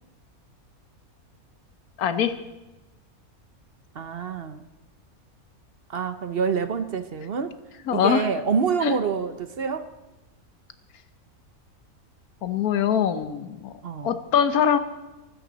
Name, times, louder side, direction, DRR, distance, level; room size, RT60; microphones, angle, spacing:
voice 1, 2.0-2.3 7.9-8.2 8.8-8.9 12.4-13.7 14.0-14.8, left 8 dB, 85° left, 11 dB, 1.3 m, -22 dB
voice 2, 3.9-4.6 5.9-7.6 7.9-9.9 13.8-14.2, right 6 dB, 50° right, 11 dB, 0.9 m, -27 dB
23.5 x 13.0 x 4.0 m, 1.1 s
omnidirectional pair, 1.5 m